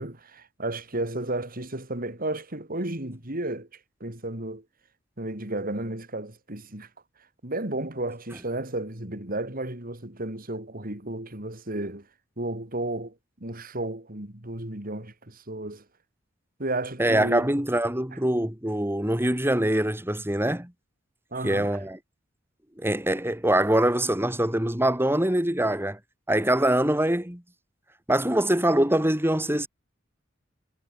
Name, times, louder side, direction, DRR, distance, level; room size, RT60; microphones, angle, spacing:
voice 1, 0.0-3.7 4.0-4.6 5.2-6.9 7.4-12.1 12.4-13.1 13.4-15.8 16.6-17.5 18.1-18.2 21.3-21.8, right 2 dB, 45° right, 4.1 m, -33 dB
voice 2, 17.0-20.7 21.4-22.0 22.8-26.0 26.3-27.4 28.1-29.7, right 1 dB, 10° right, 3.7 m, -24 dB
head